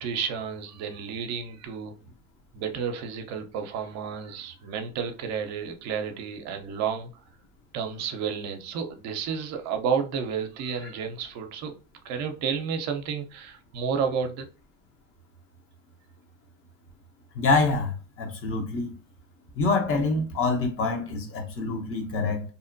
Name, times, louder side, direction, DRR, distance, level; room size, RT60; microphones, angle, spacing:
voice 1, 0.0-1.9 2.5-7.1 7.7-11.7 12.0-14.5, right 6 dB, 55° right, 0.6 m, -31 dB
voice 2, 17.3-18.9 19.6-22.4, left 3 dB, 45° left, 0.9 m, -26 dB
2.7 x 2.1 x 2.5 m
hypercardioid pair, 75°, 32 cm